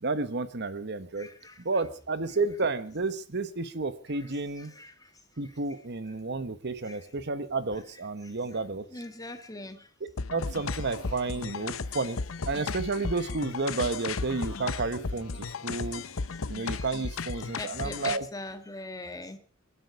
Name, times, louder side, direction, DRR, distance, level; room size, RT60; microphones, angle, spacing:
voice 1, 0.0-1.3 1.6-4.7 5.4-8.8 10.3-12.2 12.5-16.0 16.5-18.3, right 3 dB, 55° right, 12 dB, 1.2 m, -31 dB
voice 2, 1.2-1.5 4.6-4.9 6.9-7.0 8.9-9.8 16.7-16.8 17.4-19.4, left 2 dB, 20° left, 8 dB, 1.8 m, -41 dB
sound 1, 10.2-18.2, left 4 dB, 85° left, 0.8 m, -35 dB
27.0 x 11.5 x 4.8 m, 0.43 s
head